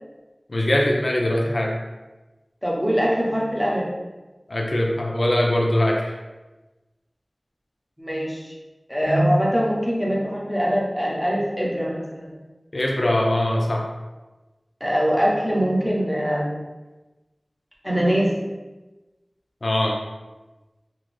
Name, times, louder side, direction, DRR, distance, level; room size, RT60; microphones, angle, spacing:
voice 1, 0.5-1.8 4.5-6.2 12.7-13.9 19.6-20.0, left 1 dB, 65° left, 0 dB, 0.4 m, -21 dB
voice 2, 2.6-3.9 8.0-8.6 8.9-12.4 14.8-16.6 17.8-18.3, equal, 5° right, -5 dB, 0.8 m, -22 dB
2.5 x 2.4 x 3.1 m, 1.1 s
wide cardioid pair, 45°, 0 cm